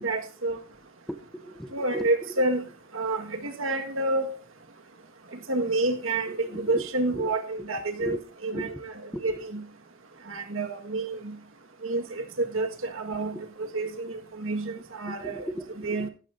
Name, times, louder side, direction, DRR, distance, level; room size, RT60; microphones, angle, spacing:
voice 1, 0.0-0.6 1.7-2.6 2.9-4.3 5.5-8.2 8.4-8.7 9.2-9.6 10.3-11.3 11.8-15.4 15.8-16.1, right 2 dB, 75° right, 1.7 m, -29 dB
voice 2, 1.1-2.5 6.3-6.9 7.1-7.7 8.0-8.2 8.5-8.8 9.1-9.4 13.3-13.5 15.1-16.1, equal, ahead, 0.9 m, -38 dB
15.5 x 13.5 x 2.7 m
head